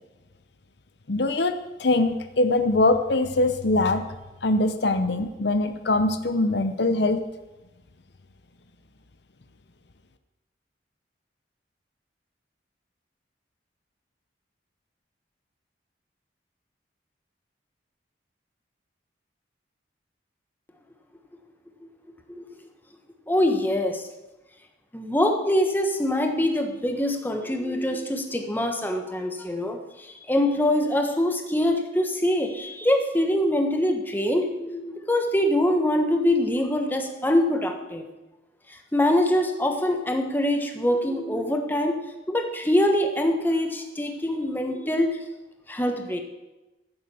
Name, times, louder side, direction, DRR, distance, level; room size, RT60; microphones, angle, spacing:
voice 1, 1.1-1.5 1.8-4.0 4.4-7.2, left 2 dB, 65° left, 9 dB, 0.8 m, -22 dB
voice 2, 23.3-24.1 24.9-38.1 38.7-42.0 42.3-45.2 45.7-46.2, left 1 dB, 10° left, 4 dB, 1.3 m, -24 dB
14.5 x 7.8 x 7.0 m, 1.1 s
head